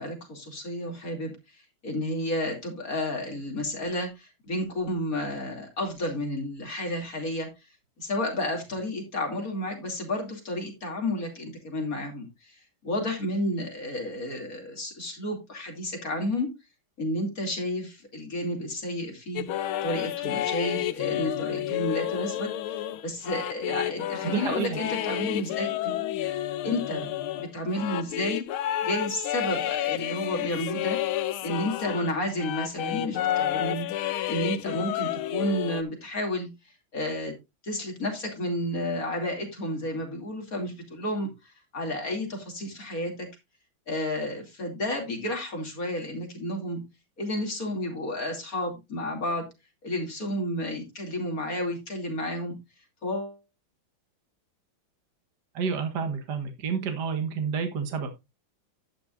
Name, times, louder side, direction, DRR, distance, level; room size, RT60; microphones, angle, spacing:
voice 1, 0.0-7.5 8.0-12.6 12.8-16.5 17.0-19.5 19.8-26.0 26.6-27.1 27.3-28.4 28.8-31.0 31.4-33.9 34.3-36.5 36.9-37.3 37.6-43.3 43.9-46.8 47.2-49.5 49.8-52.5 53.0-53.3, left 1 dB, 45° left, 2 dB, 3.1 m, -31 dB
sound 1, 19.4-32.1 32.4-35.8, left 12 dB, 85° left, 1.6 m, -30 dB
voice 2, 24.2-24.8 55.5-58.1, right 6 dB, 55° right, 6 dB, 2.1 m, -29 dB
11.0 x 9.7 x 2.5 m, 0.23 s
omnidirectional pair, 2.2 m